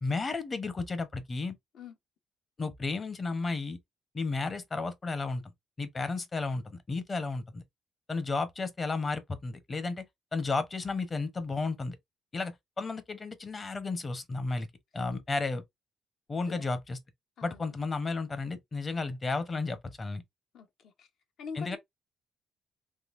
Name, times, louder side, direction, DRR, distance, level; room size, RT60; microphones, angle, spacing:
voice 1, 0.0-1.6 2.6-3.8 4.1-5.4 5.8-7.6 8.1-10.1 10.3-12.0 12.3-14.7 14.9-15.6 16.3-17.0 17.4-20.2 21.6-21.8, left 3 dB, 35° left, 0.8 m, -33 dB
voice 2, 16.5-16.8 17.4-17.7 20.5-21.1 21.4-21.8, left 5 dB, 75° left, 1.0 m, -45 dB
3.7 x 2.7 x 2.5 m
cardioid pair, 90°, 0 cm